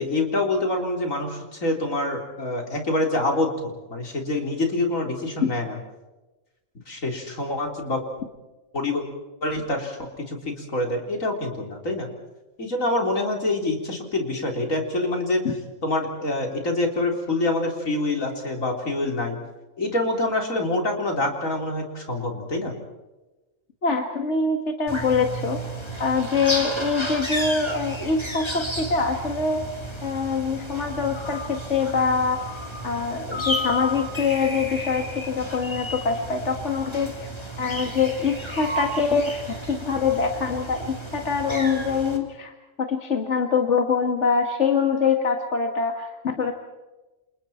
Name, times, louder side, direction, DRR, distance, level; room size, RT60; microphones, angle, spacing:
voice 1, 0.0-5.8 6.9-8.0 8.7-9.0 9.4-10.0 10.3-12.1 12.6-15.4 15.8-19.4 19.8-22.7, left 2 dB, 85° left, 2 dB, 4.2 m, -26 dB
voice 2, 23.8-25.6 26.0-29.7 30.0-32.4 32.8-37.1 37.6-42.5 42.8-46.5, left 5 dB, 60° left, 4 dB, 2.0 m, -24 dB
sound 1, 24.9-42.2, equal, 20° left, 3.1 m, -32 dB
29.0 x 27.5 x 4.4 m, 1.1 s
omnidirectional pair, 1.4 m